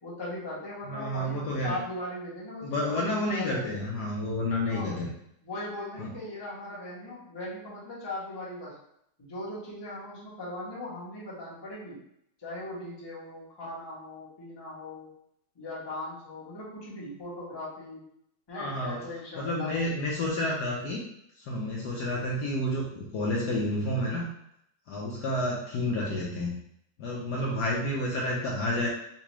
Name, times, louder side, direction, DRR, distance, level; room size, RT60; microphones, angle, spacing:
voice 1, 0.0-3.8 4.7-4.9 5.4-8.8 9.2-12.0 12.4-15.1 15.5-18.0 18.5-20.0, left 1 dB, 20° left, -7 dB, 0.7 m, -39 dB
voice 2, 0.9-1.8 2.6-5.1 6.0-6.1 18.5-19.0 19.4-21.0 21.4-24.3 24.9-26.5 27.0-28.9, left 1 dB, 70° left, -3 dB, 1.1 m, -30 dB
3.9 x 2.3 x 3.0 m, 0.74 s
omnidirectional pair, 2.1 m